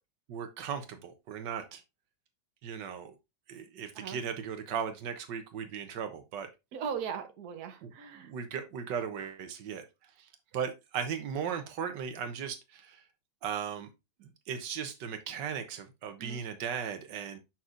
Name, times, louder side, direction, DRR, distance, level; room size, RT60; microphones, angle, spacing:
voice 1, 0.3-1.8 2.6-3.1 3.5-6.5 7.8-7.9 8.2-9.8 10.5-13.0 13.4-13.9 14.5-17.4, right 7 dB, 90° right, 8 dB, 1.6 m, -37 dB
voice 2, 6.7-8.3 16.2-16.4, right 7 dB, 60° right, 7 dB, 1.5 m, -38 dB
7.1 x 5.8 x 2.5 m, 0.23 s
omnidirectional pair, 1.9 m